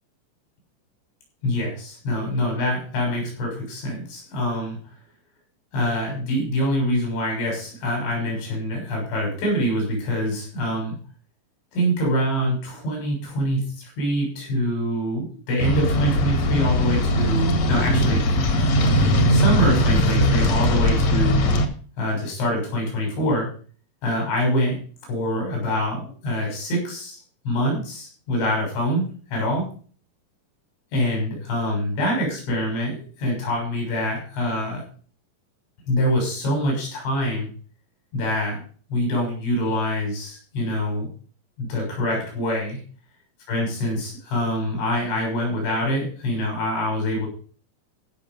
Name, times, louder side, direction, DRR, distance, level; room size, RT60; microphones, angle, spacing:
voice 1, 1.4-4.8 5.7-11.0 11.7-18.2 19.3-21.4 22.0-23.5 24.0-27.2 27.5-29.7 30.9-34.8 35.9-37.5 38.1-38.6 38.9-41.1 41.6-42.8 43.5-47.3, equal, 90° left, 0 dB, 8.9 m, -25 dB
sound 1, 15.6-21.7, equal, 55° left, 2.2 m, -20 dB
16.5 x 6.9 x 5.4 m, 0.42 s
omnidirectional pair, 5.1 m